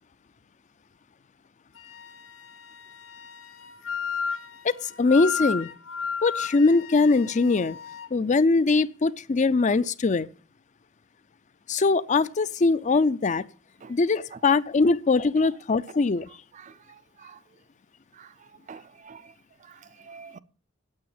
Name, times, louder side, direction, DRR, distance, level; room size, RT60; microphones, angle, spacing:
Wind instrument woodwind instrument, 1.8-8.1, left 6 dB, 85° left, 1.4 m, -34 dB
voice 1, 5.0-5.7 6.2-7.8 8.1-10.3 11.7-13.4 13.9-16.3, left 3 dB, 35° left, 0.5 m, -22 dB
voice 2, 16.3-17.4 18.1-19.3 19.6-20.4, right 5 dB, 40° right, 0.5 m, -48 dB
8.8 x 7.9 x 8.9 m
head